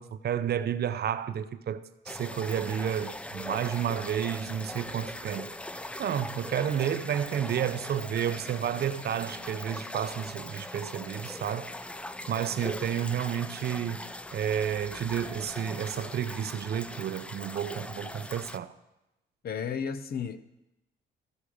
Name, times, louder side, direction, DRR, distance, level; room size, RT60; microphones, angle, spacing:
voice 1, 0.0-5.5 6.0-11.7 12.3-14.0 14.3-18.7, right 9 dB, 55° right, 0.6 m, -31 dB
sound 1, 2.1-18.6, left 1 dB, 5° left, 0.4 m, -40 dB
voice 2, 19.4-20.4, left 7 dB, 50° left, 0.7 m, -33 dB
14.5 x 6.2 x 5.0 m
cardioid pair, 90°, 20 cm